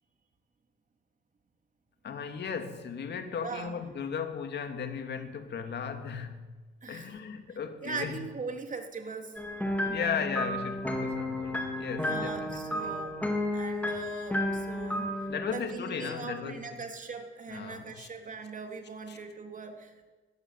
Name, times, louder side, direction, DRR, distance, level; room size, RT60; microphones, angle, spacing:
voice 1, 2.0-6.5 6.9-8.2 9.9-12.9 15.3-16.8 17.5-18.1 19.1-19.2, left 6 dB, 60° left, 2.8 m, -36 dB
voice 2, 3.4-3.8 6.8-7.1 7.5-9.4 9.8-10.1 10.4-10.5 12.0-13.2 13.5-19.9, right 4 dB, 40° right, 3.6 m, -40 dB
sound 1, 9.4-15.6, left 1 dB, 5° left, 4.2 m, -32 dB
19.5 x 16.5 x 8.5 m
cardioid pair, 90°, 20 cm